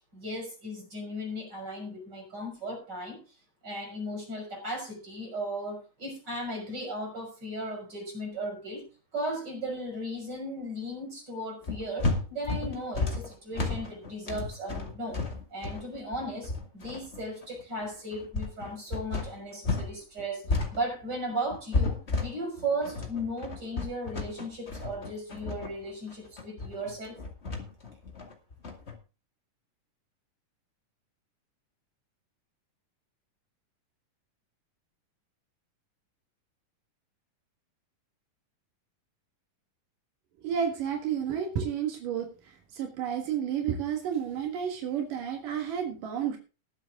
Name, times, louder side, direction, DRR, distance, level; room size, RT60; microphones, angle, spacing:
voice 1, 0.1-3.2 3.6-8.9 9.1-15.2 15.5-20.4 20.7-27.2, right 1 dB, 30° right, 0 dB, 6.4 m, -36 dB
sound 1, 11.6-19.9 20.2-28.9, left 3 dB, 25° left, 1.8 m, -32 dB
voice 2, 40.4-46.4, right 8 dB, 80° right, 2 dB, 3.2 m, -31 dB
19.5 x 7.6 x 3.7 m, 0.32 s
omnidirectional pair, 3.7 m